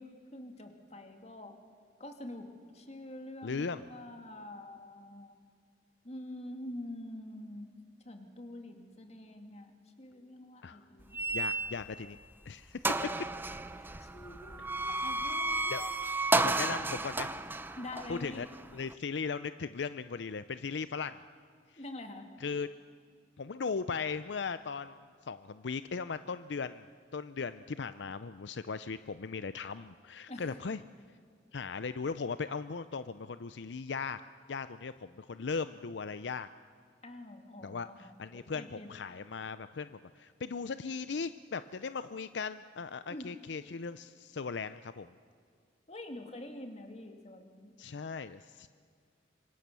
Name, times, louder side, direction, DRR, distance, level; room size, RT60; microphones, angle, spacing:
voice 1, 0.0-1.6 2.0-5.4 6.0-7.7 8.0-11.2 13.7-15.9 17.8-18.5 21.8-22.3 30.3-30.6 37.0-38.9 43.1-43.4 45.9-47.7, left 1 dB, 35° left, 5 dB, 2.5 m, -46 dB
voice 2, 3.4-3.8 10.6-10.8 11.3-12.2 12.5-12.8 15.7-15.8 16.3-17.3 18.1-18.5 18.7-21.2 22.4-22.7 23.4-25.0 25.2-26.9 27.1-30.8 31.5-34.2 34.5-36.5 37.6-45.1 47.8-48.7, left 5 dB, 75° left, 13 dB, 0.5 m, -38 dB
sound 1, 11.1-12.1 12.5-12.6 12.8-18.9, right 2 dB, 10° right, 0.7 m, -33 dB
26.5 x 24.0 x 6.9 m, 2.2 s
head